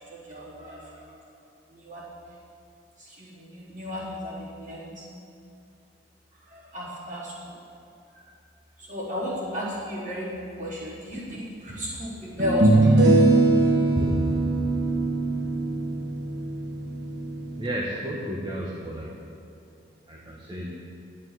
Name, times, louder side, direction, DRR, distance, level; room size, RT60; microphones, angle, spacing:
voice 1, 0.1-1.1 1.7-2.1 3.0-5.1 6.4-7.6 8.1-8.2 8.8-13.2 13.9-14.1, equal, 40° right, -7 dB, 3.9 m, -33 dB
sound 1, 11.3-11.4 12.4-17.7, right 2 dB, 60° right, 1.3 m, -22 dB
voice 2, 17.6-19.2 20.1-20.7, equal, 25° right, -3 dB, 1.1 m, -33 dB
12.0 x 8.7 x 7.6 m, 2.6 s
head